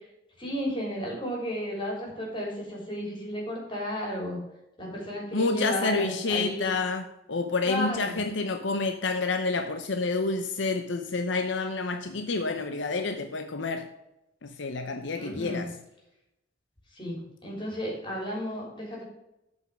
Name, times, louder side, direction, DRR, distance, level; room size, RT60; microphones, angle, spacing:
voice 1, 0.4-4.4 4.8-6.7 7.6-8.2 15.2-15.6 17.0-19.0, equal, 25° left, -2 dB, 3.7 m, -33 dB
voice 2, 5.3-13.9 14.4-15.7, left 3 dB, 75° left, 6 dB, 0.7 m, -29 dB
8.0 x 5.6 x 6.2 m, 0.88 s
head